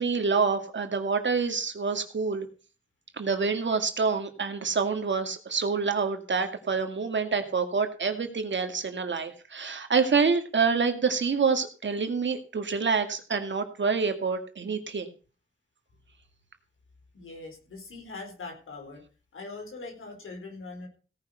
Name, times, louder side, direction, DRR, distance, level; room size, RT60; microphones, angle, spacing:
voice 1, 0.0-2.5 3.2-15.1, right 5 dB, 65° right, 7 dB, 2.1 m, -27 dB
voice 2, 17.1-19.0 19.3-20.9, left 3 dB, 80° left, 2 dB, 4.6 m, -41 dB
17.0 x 5.8 x 6.5 m, 0.37 s
cardioid pair, 50°, 21 cm